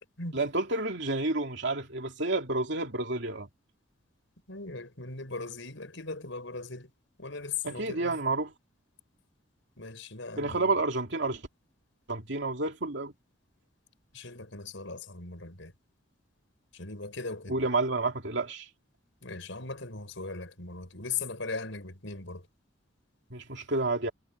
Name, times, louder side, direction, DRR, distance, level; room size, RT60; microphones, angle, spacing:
voice 1, 0.3-3.5 7.6-8.5 10.4-11.4 12.1-13.1 17.5-18.7 23.3-24.1, right 2 dB, 65° right, 2.8 m, -30 dB
voice 2, 4.5-6.9 7.2-8.2 9.8-10.7 14.1-15.7 16.7-17.6 19.2-22.5, left 4 dB, 70° left, 6.0 m, -39 dB
head